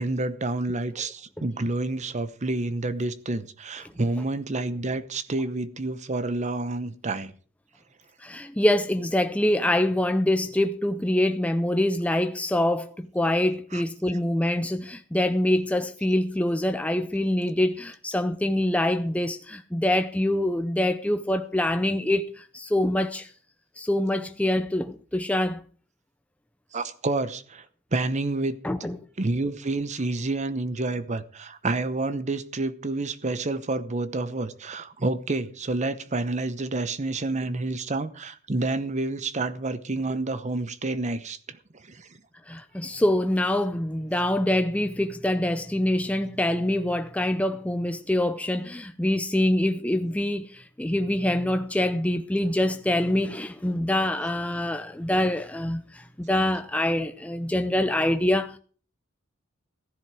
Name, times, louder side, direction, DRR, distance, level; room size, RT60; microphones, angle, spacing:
voice 1, 0.0-7.3 13.7-13.8 26.7-27.6 27.9-28.6 29.2-41.6 41.9-42.1, right 2 dB, 35° right, 0.9 m, -29 dB
voice 2, 8.2-23.3 23.8-25.6 28.6-29.0 42.5-58.6, left 1 dB, 5° left, 0.6 m, -25 dB
15.0 x 11.0 x 4.8 m
head